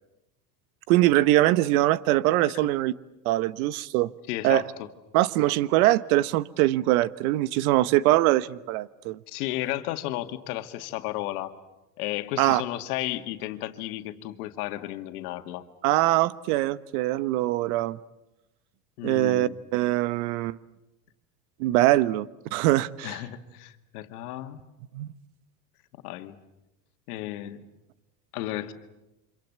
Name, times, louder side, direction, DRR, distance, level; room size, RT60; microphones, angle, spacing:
voice 1, 0.9-2.9 3.2-4.1 4.4-4.6 5.1-9.2 12.4-12.6 15.8-18.0 19.0-20.6 21.6-23.2 24.9-25.1, right 16 dB, 65° right, 1.2 m, -23 dB
voice 2, 4.3-4.9 9.3-11.5 12.0-15.7 19.0-19.6 23.0-24.6 26.0-26.4 27.1-27.7 28.3-28.7, left 15 dB, 75° left, 2.2 m, -33 dB
28.5 x 25.5 x 8.2 m
supercardioid pair, 110°, 46 cm